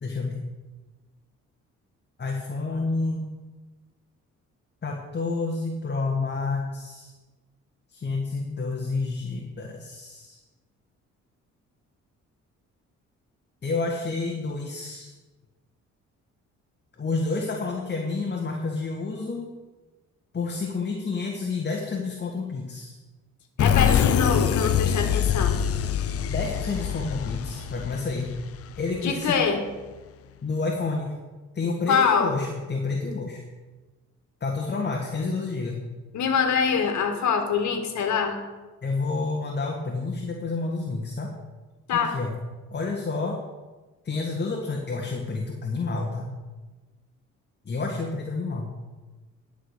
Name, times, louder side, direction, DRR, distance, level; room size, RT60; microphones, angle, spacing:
voice 1, 0.0-0.4 2.2-3.3 4.8-7.1 7.9-10.4 13.6-15.1 17.0-19.5 20.3-23.0 26.3-28.3 28.7-29.4 30.4-31.1 31.5-33.4 34.4-35.8 38.8-41.3 41.9-42.4 42.7-43.4 44.0-46.3 47.6-48.7, left 3 dB, 35° left, 1 dB, 1.6 m, -29 dB
voice 2, 23.6-25.6 29.0-29.6 31.9-32.3 36.1-38.4 41.9-42.1, left 6 dB, 70° left, 5 dB, 1.8 m, -24 dB
sound 1, 23.6-29.1, left 8 dB, 50° left, 0.6 m, -24 dB
11.0 x 5.0 x 8.1 m, 1.2 s
cardioid pair, 90°, 30 cm